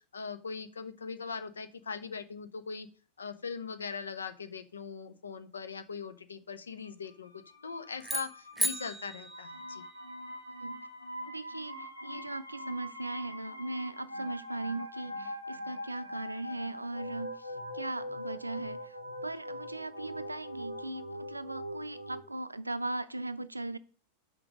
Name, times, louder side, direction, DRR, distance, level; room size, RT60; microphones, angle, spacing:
voice 1, 0.0-2.9 3.2-9.8, left 5 dB, 70° left, 0.7 m, -41 dB
sound 1, 7.1-22.2, left 1 dB, 90° left, 1.5 m, -43 dB
sound 2, 8.0-10.3, right 1 dB, 5° right, 0.4 m, -36 dB
voice 2, 11.3-23.8, right 2 dB, 85° right, 0.5 m, -39 dB
5.9 x 5.1 x 6.3 m
figure-of-eight pair, 90°, 0 cm